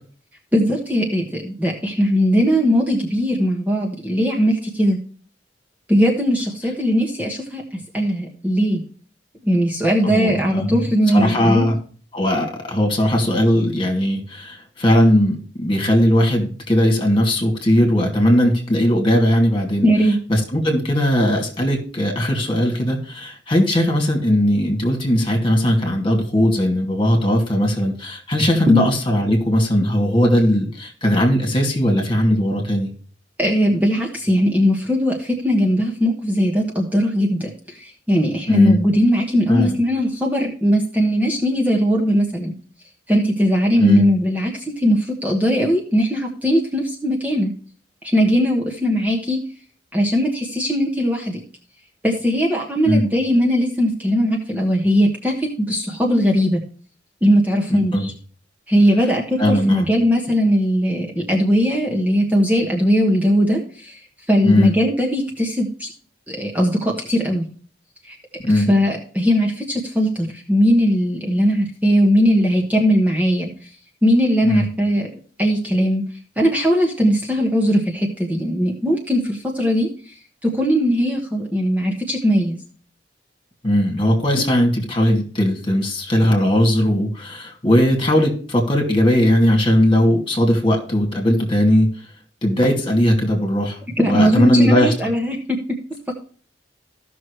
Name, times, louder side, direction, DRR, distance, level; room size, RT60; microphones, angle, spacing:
voice 1, 0.5-5.0 5.9-7.6 7.9-8.8 9.4-11.7 19.8-20.2 28.7-28.8 33.4-42.5 43.1-47.5 48.0-49.4 49.9-51.4 52.0-56.6 57.2-58.1 58.7-64.0 64.3-65.9 66.3-67.4 68.0-68.2 68.5-73.5 74.0-75.1 75.4-76.0 76.4-80.1 80.4-82.6 94.0-95.4 96.1-96.2, equal, 10° right, -1 dB, 1.3 m, -19 dB
voice 2, 10.0-10.8 11.1-11.8 12.1-19.9 20.3-32.9 38.5-38.8 39.5-39.8 43.8-44.0 52.9-53.0 57.7-58.1 59.4-59.8 64.4-64.7 68.4-68.7 74.4-74.7 83.6-91.9 92.4-94.9, equal, 30° left, 1 dB, 2.6 m, -18 dB
15.0 x 6.2 x 3.2 m, 0.43 s
head